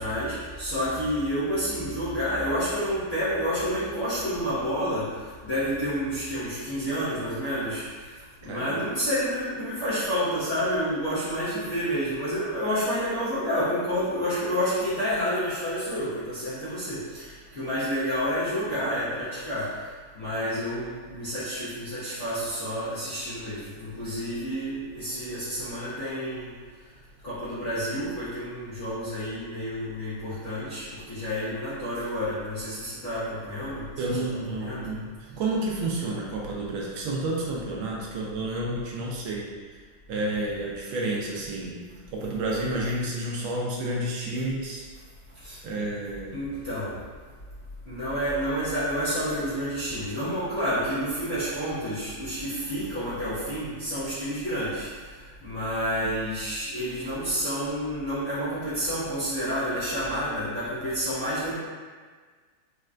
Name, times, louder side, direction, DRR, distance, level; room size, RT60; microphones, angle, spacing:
voice 1, 0.0-5.1 5.4-7.8 8.4-19.7 20.1-26.5 27.2-34.9 45.4-45.6 46.3-46.9 47.9-54.9 55.4-61.5, equal, 50° left, -14 dB, 0.8 m, -29 dB
voice 2, 8.4-8.8 34.0-35.1 35.4-39.5 40.1-41.8 42.1-44.8 45.6-46.4, right 2 dB, 75° right, -3 dB, 1.3 m, -30 dB
4.3 x 2.1 x 2.4 m, 1.5 s
omnidirectional pair, 2.3 m